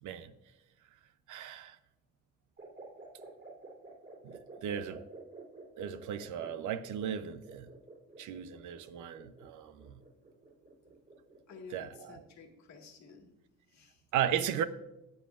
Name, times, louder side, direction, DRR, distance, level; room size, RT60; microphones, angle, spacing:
voice 1, 0.0-0.3 1.3-1.8 4.2-5.0 5.8-7.7 8.2-9.9 11.7-12.2 14.1-14.6, right 9 dB, 80° right, 0.7 m, -36 dB
sound 1, 2.6-12.2, right 3 dB, 35° right, 3.3 m, -52 dB
voice 2, 11.5-13.3 13.7-14.0, left 5 dB, 65° left, 1.8 m, -52 dB
19.5 x 7.1 x 2.5 m
cardioid pair, 90°, 30 cm